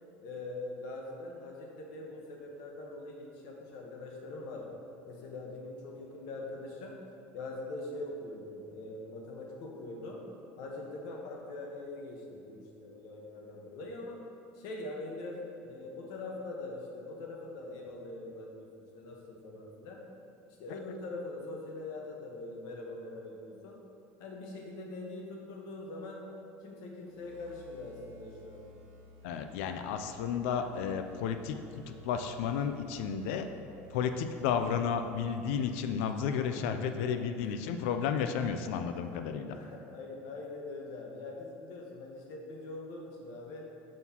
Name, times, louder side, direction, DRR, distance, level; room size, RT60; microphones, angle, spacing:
voice 1, 0.2-4.7 5.1-7.0 7.3-10.3 10.6-14.2 14.5-20.0 20.6-23.8 24.2-26.3 26.6-28.7 39.5-43.7, left 2 dB, 70° left, 0 dB, 1.0 m, -43 dB
sound 1, 27.0-36.5, left 3 dB, 85° right, 1.1 m, -55 dB
voice 2, 29.2-31.6 31.9-33.5 33.9-39.6, left 7 dB, 85° left, 7 dB, 0.4 m, -32 dB
6.3 x 5.5 x 2.9 m, 2.6 s
supercardioid pair, 120°, 7 cm